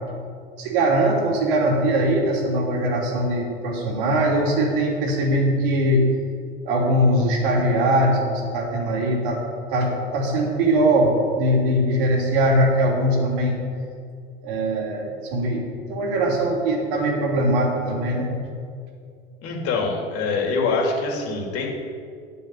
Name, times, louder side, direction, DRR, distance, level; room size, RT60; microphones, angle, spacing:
voice 1, 0.6-6.0 6.6-9.4 9.7-13.6 14.4-18.3, right 1 dB, 65° right, 0 dB, 3.1 m, -21 dB
voice 2, 19.4-21.7, left 4 dB, 50° left, 0 dB, 3.1 m, -24 dB
10.0 x 7.0 x 8.4 m, 2.3 s
hypercardioid pair, 95°, 29 cm